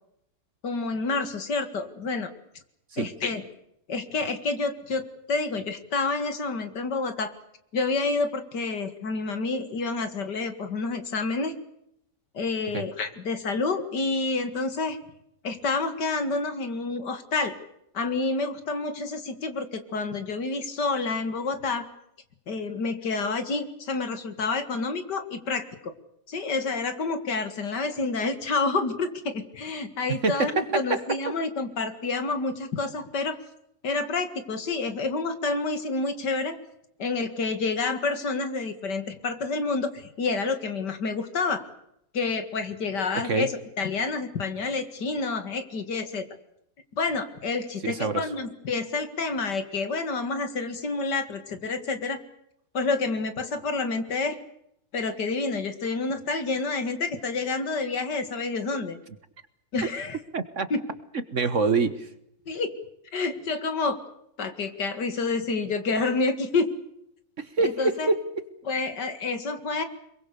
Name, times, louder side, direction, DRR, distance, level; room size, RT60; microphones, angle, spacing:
voice 1, 0.6-2.3 3.0-3.4 3.9-7.3 7.7-11.5 12.3-15.0 15.4-17.5 17.9-21.9 22.5-25.9 26.3-33.4 33.8-36.6 37.0-41.6 42.1-46.3 47.0-52.2 52.7-54.4 54.9-59.0 59.7-60.2 60.7-60.8 62.5-62.8 63.1-64.0 64.4-66.7 67.6-68.1 68.6-69.8, left 3 dB, 70° left, 10 dB, 2.6 m, -28 dB
voice 2, 30.2-31.2 43.2-43.5 47.8-48.2 60.3-60.7 61.1-62.1 67.4-68.4, right 4 dB, 45° right, 12 dB, 1.6 m, -26 dB
26.0 x 22.5 x 6.8 m, 0.77 s
omnidirectional pair, 1.9 m